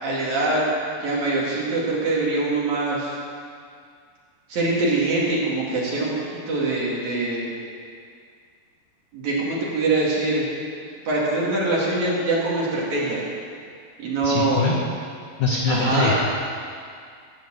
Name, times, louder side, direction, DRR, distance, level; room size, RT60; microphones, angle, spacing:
voice 1, 0.0-0.7 1.0-3.2 4.5-7.5 9.1-10.5 11.0-13.3 14.0-14.7 15.7-16.1, right 2 dB, 50° right, -5 dB, 3.0 m, -23 dB
voice 2, 14.2-14.8 15.4-16.1, left 4 dB, 70° left, -2 dB, 1.8 m, -22 dB
15.0 x 7.1 x 7.8 m, 2.2 s
omnidirectional pair, 4.9 m